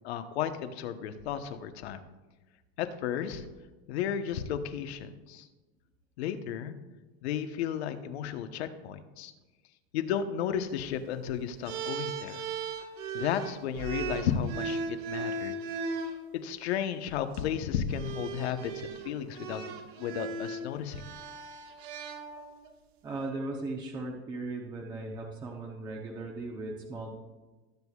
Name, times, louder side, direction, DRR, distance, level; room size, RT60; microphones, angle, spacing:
voice 1, 0.0-2.0 2.8-3.4 3.9-5.4 6.2-6.7 7.2-9.3 9.9-12.4 13.1-15.5 16.4-21.0, left 9 dB, 80° left, 8 dB, 1.1 m, -33 dB
sound 1, 11.6-16.2 17.2-17.4 17.9-22.7, right 4 dB, 75° right, 1.7 m, -37 dB
voice 2, 23.0-27.2, right 2 dB, 15° right, 0 dB, 0.8 m, -37 dB
20.0 x 8.2 x 2.4 m, 1.2 s
supercardioid pair, 170°, 32 cm